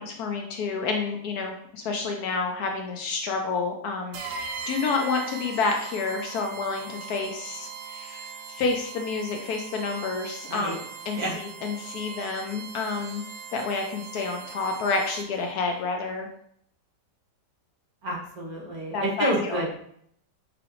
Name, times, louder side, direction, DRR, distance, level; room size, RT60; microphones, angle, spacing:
voice 1, 0.0-10.7 11.1-11.2 11.6-13.2 13.5-16.3 18.9-19.6, left 4 dB, 70° left, 3 dB, 1.0 m, -29 dB
sound 1, 4.1-15.5, right 6 dB, 90° right, 1.3 m, -40 dB
voice 2, 18.0-19.7, right 1 dB, 60° right, -1 dB, 1.5 m, -29 dB
5.7 x 3.3 x 2.5 m, 0.68 s
omnidirectional pair, 1.9 m